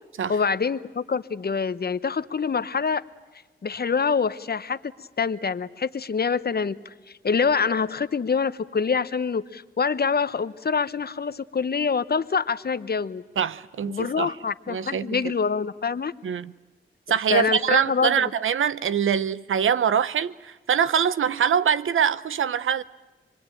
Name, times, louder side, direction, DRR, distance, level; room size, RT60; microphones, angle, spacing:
voice 1, 0.3-3.0 3.6-4.9 5.2-6.8 7.2-13.2 13.9-16.1 17.3-18.2, left 5 dB, 50° left, 1.0 m, -25 dB
voice 2, 13.4-14.3 14.7-15.2 16.2-16.5 17.1-22.8, right 8 dB, 80° right, 0.8 m, -24 dB
27.5 x 22.0 x 9.2 m
cardioid pair, 55°, 20 cm